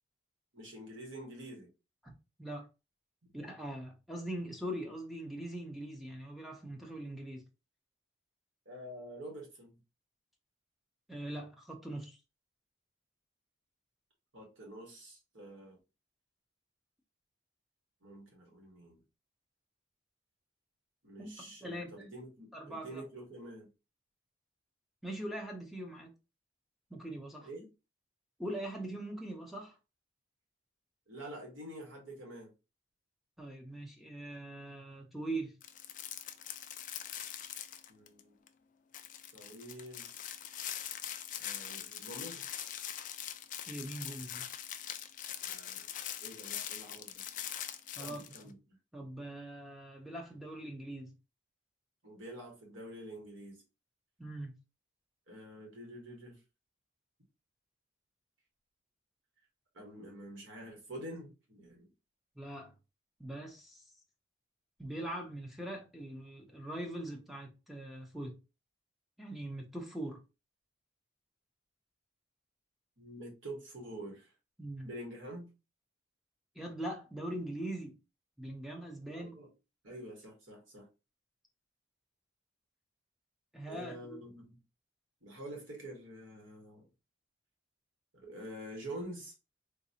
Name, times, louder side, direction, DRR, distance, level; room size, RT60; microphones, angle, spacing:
voice 1, 0.5-1.7 3.2-3.3 8.6-9.8 14.3-15.8 18.0-19.0 21.0-23.7 27.4-27.7 31.1-32.5 37.9-38.4 39.3-40.2 41.4-42.5 45.4-45.8 46.2-47.2 47.9-48.5 52.0-53.6 55.3-56.4 59.7-61.9 73.0-74.3 74.8-75.5 79.1-79.5 79.8-80.9 83.7-84.6 85.2-86.9 88.2-89.3, right 1 dB, 70° right, 1.6 m, -47 dB
voice 2, 3.3-7.4 11.1-12.2 21.2-21.3 21.6-22.0 22.5-23.0 25.0-26.1 26.9-27.5 28.4-29.8 33.4-35.6 43.7-44.5 48.0-48.5 48.9-51.1 54.2-54.6 62.4-62.7 63.2-63.8 64.8-68.4 69.2-70.2 74.6-74.9 76.5-78.0 78.4-79.4 83.5-84.2, right 1 dB, ahead, 0.6 m, -42 dB
sound 1, 35.6-38.2 38.5-38.6 38.9-48.4, left 10 dB, 40° left, 0.3 m, -42 dB
4.0 x 2.6 x 2.7 m
head